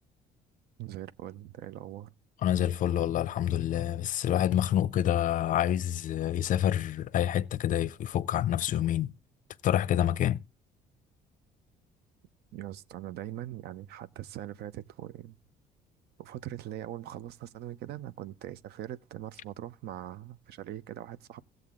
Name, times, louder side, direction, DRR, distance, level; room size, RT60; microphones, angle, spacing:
voice 1, 0.8-2.1 12.5-15.4 16.2-21.4, right 12 dB, 75° right, 0.6 m, -41 dB
voice 2, 2.4-9.1 9.6-10.4, left 11 dB, 50° left, 0.5 m, -27 dB
16.0 x 7.8 x 3.6 m
cardioid pair, 110°, 17 cm